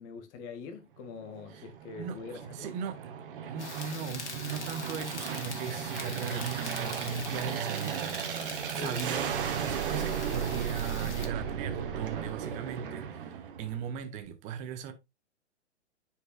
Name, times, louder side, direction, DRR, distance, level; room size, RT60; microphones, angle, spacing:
voice 1, 0.0-2.7 8.8-9.0, left 4 dB, 10° left, 0.4 m, -43 dB
Aircraft, 1.2-14.0, right 8 dB, 50° right, 1.1 m, -36 dB
voice 2, 2.0-3.0 3.4-14.9, right 7 dB, 20° right, 0.7 m, -38 dB
sound 1, 3.6-11.3, left 4 dB, 70° left, 1.7 m, -43 dB
9.7 x 4.6 x 2.3 m
figure-of-eight pair, 120°, 35 cm